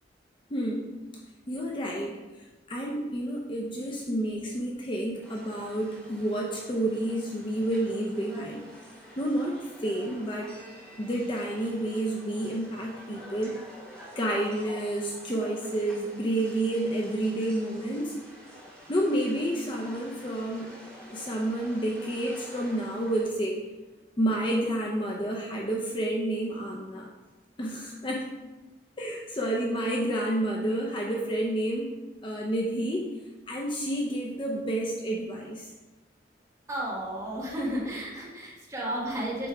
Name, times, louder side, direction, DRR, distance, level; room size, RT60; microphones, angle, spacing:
voice 1, 0.5-0.9 1.5-2.2 2.7-8.6 9.2-10.5 11.0-13.5 14.2-18.2 18.9-20.7 21.1-23.6 24.2-27.1 27.6-28.3 29.0-32.0 32.2-33.1 33.5-35.7, right 1 dB, 30° left, -1 dB, 0.6 m, -30 dB
sound 1, 5.2-23.2, equal, 5° left, 2.2 m, -48 dB
voice 2, 36.7-39.5, right 1 dB, 15° right, -6 dB, 1.8 m, -33 dB
7.9 x 3.5 x 4.6 m, 1.2 s
head